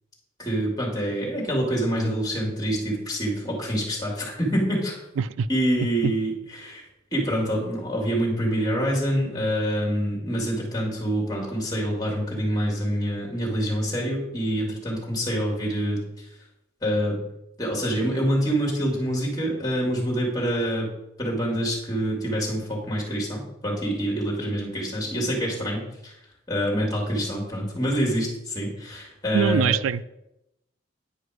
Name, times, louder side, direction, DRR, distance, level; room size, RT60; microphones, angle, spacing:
voice 1, 0.4-5.0 5.5-16.0 16.8-17.2 17.6-20.9 21.2-26.1 26.5-29.7, equal, 20° left, -3 dB, 2.5 m, -26 dB
voice 2, 5.2-5.5 29.3-30.0, right 7 dB, 85° right, 16 dB, 0.3 m, -23 dB
9.8 x 4.9 x 4.9 m, 0.85 s
head